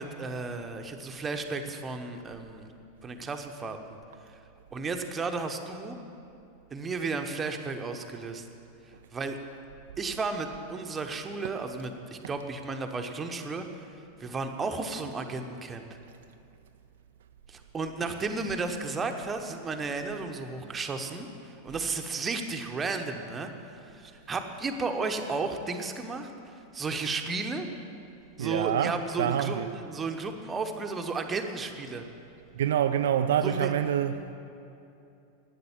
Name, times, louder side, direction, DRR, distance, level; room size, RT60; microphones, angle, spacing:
voice 1, 0.0-2.7 3.0-3.8 4.7-6.0 6.7-8.5 9.1-9.4 10.0-13.9 14.2-15.8 17.5-23.5 23.8-27.7 28.4-32.0 33.4-33.7, right 4 dB, 20° right, 1.0 m, -33 dB
voice 2, 28.4-29.7 32.6-34.3, right 9 dB, 60° right, 0.4 m, -27 dB
12.0 x 9.0 x 7.4 m
figure-of-eight pair, 90°, 0 cm